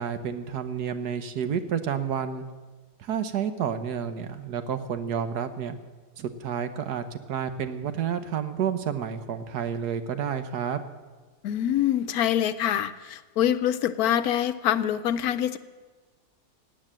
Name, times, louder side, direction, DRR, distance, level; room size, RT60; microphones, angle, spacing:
voice 1, 0.0-2.4 3.0-5.8 6.2-10.8, right 8 dB, 80° right, 9 dB, 1.5 m, -30 dB
voice 2, 11.4-15.6, left 10 dB, 75° left, 13 dB, 1.1 m, -25 dB
17.5 x 9.0 x 7.5 m, 1.3 s
omnidirectional pair, 1.7 m